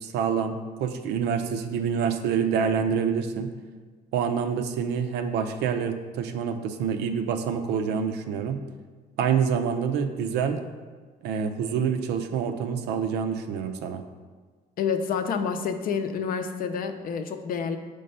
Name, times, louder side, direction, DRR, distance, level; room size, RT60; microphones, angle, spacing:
voice 1, 0.0-3.5 4.1-8.6 9.2-10.6 11.2-14.0, right 7 dB, 80° right, 8 dB, 0.5 m, -27 dB
voice 2, 14.8-17.8, left 6 dB, 55° left, 7 dB, 0.5 m, -28 dB
5.3 x 3.3 x 5.4 m, 1.5 s
cardioid pair, 110°, 17 cm